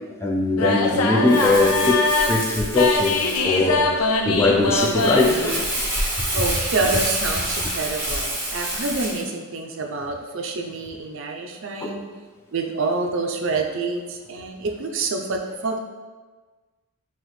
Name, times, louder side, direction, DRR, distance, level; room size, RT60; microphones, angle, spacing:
voice 1, 0.2-5.8 6.2-6.3 11.8-11.9, left 2 dB, 10° left, 0 dB, 0.4 m, -21 dB
sound 1, 0.6-5.6, left 3 dB, 80° left, 0.5 m, -22 dB
Crumpling crinkling, 1.3-9.2, right 1 dB, 10° right, 0.9 m, -28 dB
voice 2, 6.3-12.0 12.5-15.8, right 3 dB, 60° right, 3 dB, 0.5 m, -27 dB
5.7 x 2.9 x 3.1 m, 1.4 s
head